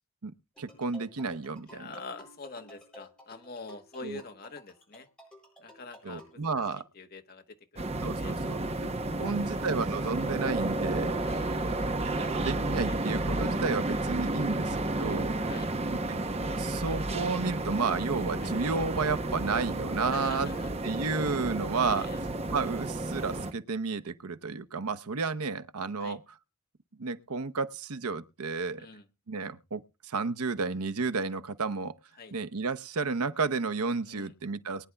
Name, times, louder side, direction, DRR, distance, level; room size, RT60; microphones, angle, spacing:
voice 1, 0.2-1.9 4.0-4.2 6.0-6.8 8.0-8.9 9.2-11.2 11.7-15.3 15.9-16.2 16.5-20.5 20.8-22.1 22.5-26.2 27.0-28.9 29.3-31.9 32.3-34.9, right 4 dB, 85° right, 0.8 m, -32 dB
sound 1, 0.6-6.4, left 1 dB, 5° left, 7.9 m, -54 dB
voice 2, 1.7-5.1 5.6-6.6 6.9-8.4 9.2-9.6 11.2-13.0 14.4-14.6 15.5-15.7 18.4-18.6 20.1-20.7 21.9-22.2 26.0-26.2 28.8-29.1 32.2-32.3 34.1-34.3, left 3 dB, 40° left, 1.2 m, -46 dB
sound 2, 7.8-23.5, right 2 dB, 30° right, 0.8 m, -31 dB
22.5 x 9.9 x 2.3 m
head